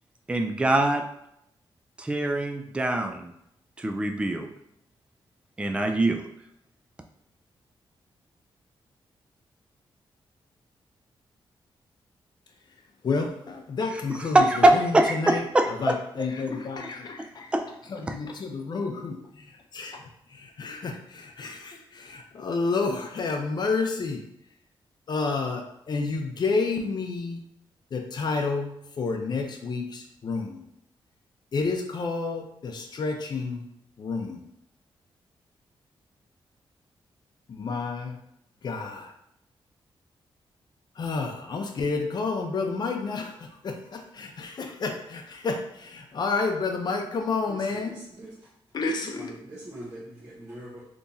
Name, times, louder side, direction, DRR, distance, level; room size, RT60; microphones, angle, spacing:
voice 1, 0.3-1.0 2.0-3.3 3.8-4.5 5.6-6.2 14.3-16.0 17.2-17.3 17.5-17.6, right 1 dB, 10° right, 5 dB, 0.3 m, -23 dB
voice 2, 13.0-17.5 17.9-20.0 20.3-24.2 25.1-27.4 27.9-30.7 31.5-33.7 34.0-34.4 37.5-38.2 38.6-39.1 41.0-48.0 48.7-49.3, left 4 dB, 50° left, 3 dB, 0.6 m, -30 dB
voice 3, 49.0-50.8, right 1 dB, 40° right, -9 dB, 1.0 m, -42 dB
3.5 x 2.9 x 2.7 m, 0.77 s
cardioid pair, 105°, 9 cm